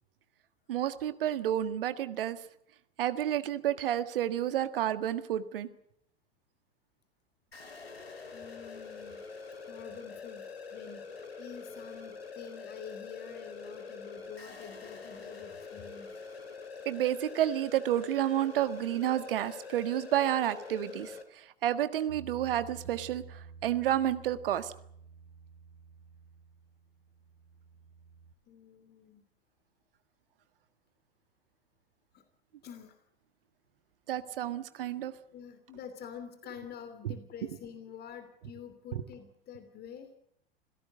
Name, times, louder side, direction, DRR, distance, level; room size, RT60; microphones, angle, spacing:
voice 1, 0.7-2.4 3.0-5.7 16.9-24.7 34.1-35.1 37.0-37.1, right 11 dB, 60° right, 12 dB, 1.6 m, -30 dB
sound 1, 7.5-21.2, left 4 dB, 75° left, 3.3 m, -45 dB
voice 2, 8.3-9.2 9.6-11.1 11.4-16.1 28.5-29.2 32.1-32.2 32.6-33.0 35.3-40.1, left 8 dB, 30° left, 10 dB, 3.0 m, -47 dB
Bass guitar, 22.1-28.3, right 5 dB, 90° right, 4.1 m, -51 dB
27.0 x 17.0 x 7.8 m, 0.71 s
figure-of-eight pair, 90°, 31 cm